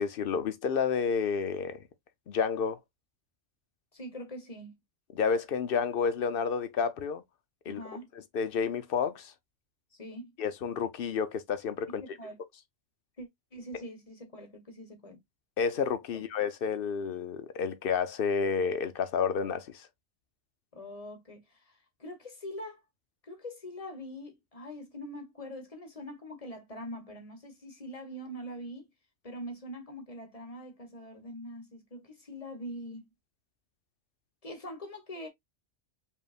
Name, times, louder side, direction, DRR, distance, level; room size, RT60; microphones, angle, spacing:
voice 1, 0.0-1.9 2.3-2.8 5.2-7.2 7.7-7.8 8.3-9.3 10.4-12.0 15.6-19.9, left 6 dB, 60° left, 0.7 m, -30 dB
voice 2, 3.9-4.7 7.7-8.1 9.9-10.3 11.9-12.4 13.2-15.2 16.1-16.2 20.7-22.8 23.2-28.9 29.2-33.1 34.4-35.3, equal, 30° left, 1.1 m, -43 dB
5.2 x 2.7 x 2.4 m
omnidirectional pair, 1.2 m